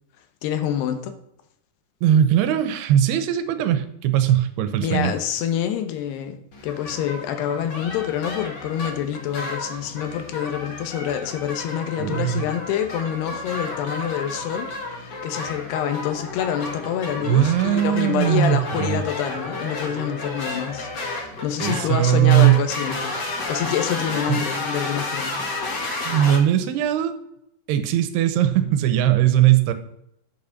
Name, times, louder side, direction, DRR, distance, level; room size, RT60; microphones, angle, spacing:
voice 1, 0.4-1.1 4.8-25.4, left 10 dB, 85° left, 8 dB, 3.1 m, -27 dB
voice 2, 2.0-5.1 12.0-12.4 17.2-19.0 21.6-22.6 24.3-24.4 26.0-27.1 27.7-29.7, right 11 dB, 85° right, 11 dB, 2.9 m, -19 dB
sound 1, 6.5-26.4, left 2 dB, 45° left, 1.4 m, -32 dB
8.3 x 6.8 x 5.8 m, 0.76 s
omnidirectional pair, 4.6 m